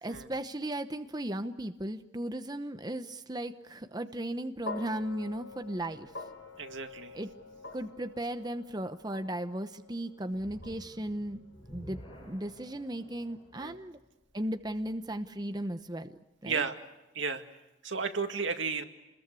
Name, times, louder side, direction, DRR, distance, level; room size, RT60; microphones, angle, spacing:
voice 1, 0.0-6.1 7.1-7.3 7.7-11.4 11.7-14.0 14.3-16.2 16.4-16.7, right 1 dB, 20° right, 8 dB, 0.9 m, -36 dB
sound 1, 4.6-13.0, left 3 dB, 80° left, 6.6 m, -47 dB
voice 2, 6.6-7.2 13.6-13.8 16.4-16.8 17.1-17.4 17.8-18.8, right 5 dB, 85° right, 6 dB, 2.1 m, -33 dB
sound 2, 10.3-15.6, equal, 25° left, 5.8 m, -52 dB
28.5 x 21.5 x 8.3 m, 0.96 s
head